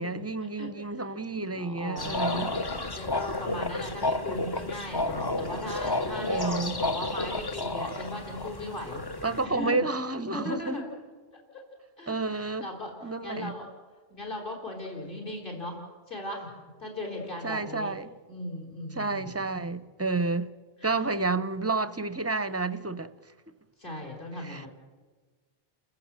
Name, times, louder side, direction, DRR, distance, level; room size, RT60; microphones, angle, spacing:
voice 1, 0.0-2.5 6.3-6.8 9.2-10.8 12.1-12.7 13.0-13.5 17.4-18.1 18.9-20.5 20.8-23.1 24.4-24.7, right 3 dB, 15° right, 0.6 m, -30 dB
voice 2, 1.3-9.0 9.4-9.8 10.3-10.8 11.5-11.6 12.0-12.9 13.2-13.7 14.1-15.8 16.1-16.5 16.8-17.9 18.3-19.5 20.8-21.1 23.8-24.7, left 1 dB, 55° left, 4.1 m, -37 dB
sound 1, 2.0-9.5, left 2 dB, 25° left, 0.8 m, -31 dB
29.5 x 15.0 x 7.5 m
omnidirectional pair, 1.0 m